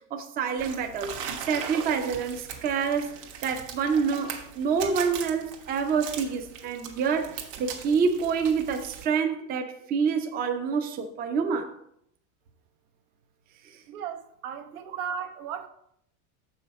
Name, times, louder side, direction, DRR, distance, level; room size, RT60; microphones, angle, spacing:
voice 1, 0.1-1.2 1.4-11.7, right 6 dB, 20° right, 0.5 m, -27 dB
sound 1, 0.6-9.0, right 7 dB, 60° right, 1.4 m, -40 dB
voice 2, 13.9-15.7, right 7 dB, 80° right, 1.1 m, -36 dB
6.9 x 5.7 x 4.1 m
supercardioid pair, 145°, 42 cm